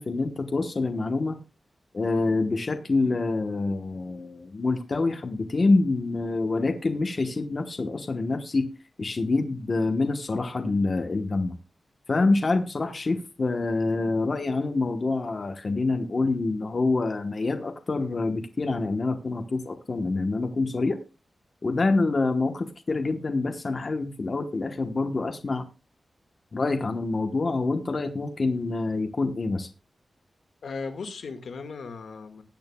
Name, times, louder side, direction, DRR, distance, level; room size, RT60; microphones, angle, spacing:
voice 1, 0.0-1.4 1.9-8.7 9.0-11.5 12.1-21.0 21.6-25.7 26.5-29.7, left 3 dB, 40° left, 1.1 m, -26 dB
voice 2, 30.6-32.4, left 4 dB, 85° left, 1.8 m, -37 dB
19.5 x 8.8 x 2.3 m
wide cardioid pair, 140°, 0 cm